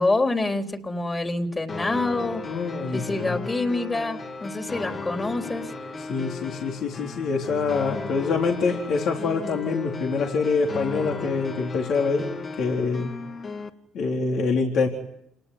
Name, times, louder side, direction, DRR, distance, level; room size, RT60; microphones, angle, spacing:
voice 1, 0.0-2.4 2.9-5.7, left 2 dB, 20° left, 4 dB, 3.9 m, -26 dB
sound 1, 1.7-13.7, left 3 dB, 40° left, 3.3 m, -35 dB
voice 2, 2.4-3.5 6.1-12.3 12.6-13.1 13.9-14.9, left 4 dB, 65° left, 1 dB, 4.2 m, -25 dB
29.0 x 19.0 x 9.7 m, 0.78 s
supercardioid pair, 80°, 0 cm